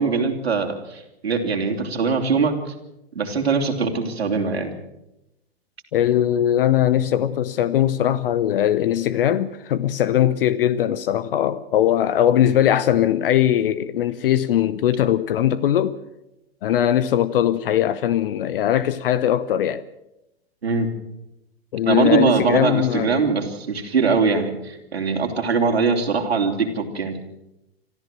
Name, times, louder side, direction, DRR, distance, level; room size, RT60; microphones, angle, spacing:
voice 1, 0.0-2.5 3.1-4.7 20.6-20.9 21.9-27.2, right 5 dB, 85° right, 3.2 m, -22 dB
voice 2, 5.9-16.0 16.6-19.8 21.7-23.1, left 11 dB, 60° left, 0.9 m, -20 dB
26.0 x 13.5 x 7.5 m
hypercardioid pair, 105°, 31 cm